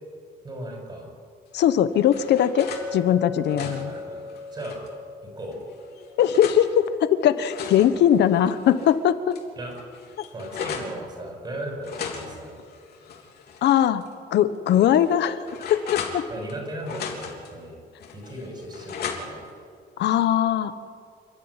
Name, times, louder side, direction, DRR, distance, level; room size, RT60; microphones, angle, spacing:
voice 1, 0.4-1.1 3.5-4.2 4.5-4.8 5.2-5.6 9.6-9.7 10.3-12.6 14.7-14.9 16.3-17.8 18.1-19.4, right 1 dB, 25° right, 1 dB, 6.3 m, -37 dB
voice 2, 1.5-3.9 6.2-9.3 13.6-14.0 14.3-15.4 15.7-16.2 20.0-20.7, left 10 dB, 90° left, 12 dB, 1.2 m, -20 dB
sound 1, 1.6-2.9 3.3-4.9 5.5-6.6 7.2-9.0 9.3-9.4 9.7-11.0 11.8-13.7 14.0-14.1 14.7-16.6 16.8-17.5 18.0-19.5, left 6 dB, 70° left, 3.4 m, -37 dB
Chink clink, 2.5-6.8, left 3 dB, 55° right, 3.3 m, -38 dB
28.5 x 12.5 x 9.7 m, 2.1 s
cardioid pair, 170°, 17 cm